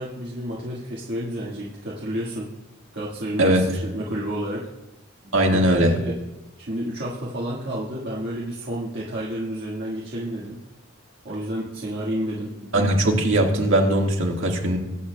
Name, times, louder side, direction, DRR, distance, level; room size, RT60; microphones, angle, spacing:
voice 1, 0.0-2.5 2.9-4.7 5.2-6.2 6.6-10.6 11.2-12.5, right 1 dB, 60° right, -6 dB, 1.6 m, -30 dB
voice 2, 5.3-6.0 12.7-14.8, right 1 dB, 80° right, 1 dB, 1.6 m, -20 dB
21.5 x 8.3 x 2.2 m, 0.98 s
head